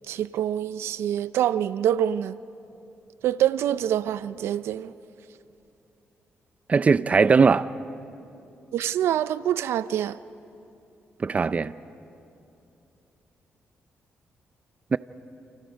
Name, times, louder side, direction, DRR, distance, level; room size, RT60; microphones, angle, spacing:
voice 1, 0.1-2.4 3.2-4.9 8.7-10.2, right 11 dB, 90° right, 0.5 m, -25 dB
voice 2, 6.7-7.7 11.2-11.7 14.9-15.0, right 5 dB, 35° right, 0.6 m, -19 dB
30.0 x 28.5 x 5.2 m
cardioid pair, 95°, 4 cm